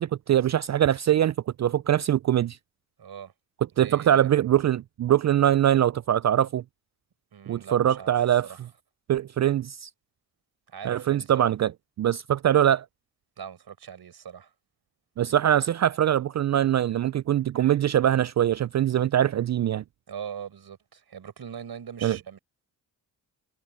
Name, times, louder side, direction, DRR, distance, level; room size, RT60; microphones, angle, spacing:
voice 1, 0.0-2.6 3.8-6.6 7.5-8.5 9.1-9.9 10.8-11.7 12.0-12.9 15.2-19.8 22.0-22.2, right 11 dB, 45° right, 0.4 m, -23 dB
voice 2, 3.0-3.3 3.8-4.3 7.3-8.1 8.4-8.6 10.7-11.5 13.4-14.5 20.1-22.4, right 8 dB, 60° right, 5.5 m, -41 dB
supercardioid pair, 55°, 42 cm